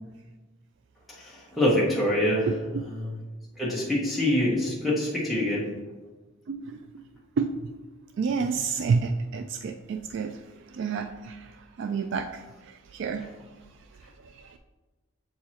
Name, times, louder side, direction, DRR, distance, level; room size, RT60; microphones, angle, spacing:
voice 1, 1.1-2.5 2.9-3.2 3.5-5.7, left 1 dB, ahead, -7 dB, 1.1 m, -25 dB
voice 2, 2.5-2.9 6.5-6.8 7.4-7.6 8.2-10.4 10.7-11.5 11.8-13.2 14.5-14.6, right 5 dB, 60° right, 6 dB, 0.3 m, -29 dB
7.4 x 4.7 x 2.9 m, 1.2 s
head